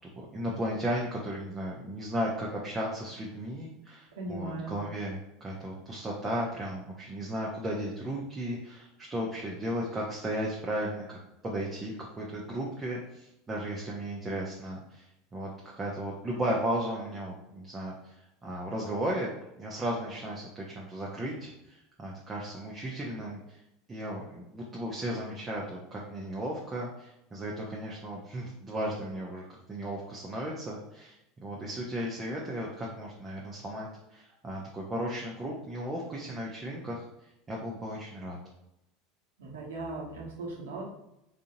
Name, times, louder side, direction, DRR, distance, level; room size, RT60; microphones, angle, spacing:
voice 1, 0.2-11.2 11.4-23.6 23.9-29.4 29.7-38.4, right 1 dB, 25° right, -3 dB, 0.7 m, -35 dB
voice 2, 4.2-4.8 39.4-40.8, right 2 dB, 75° right, -3 dB, 1.0 m, -38 dB
3.8 x 2.6 x 2.7 m, 0.87 s
hypercardioid pair, 80°, 0 cm